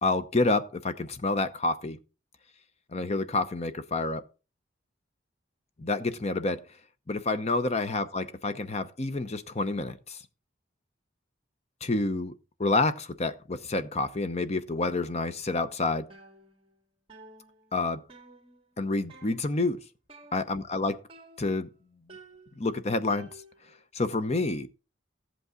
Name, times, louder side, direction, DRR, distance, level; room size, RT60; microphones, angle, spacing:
voice 1, 0.0-2.0 2.9-4.2 5.8-6.6 7.1-10.2 11.8-12.3 12.6-16.1 17.7-18.0 18.8-19.8 20.3-20.9 21.4-21.7 22.6-23.3 23.9-24.7, left 3 dB, 35° left, 0.8 m, -28 dB
sound 1, 16.1-16.8 17.1-18.8 19.1-19.7 20.1-20.8 21.1-21.7 22.1-23.8, right 2 dB, 30° right, 2.0 m, -53 dB
14.0 x 8.3 x 3.8 m
head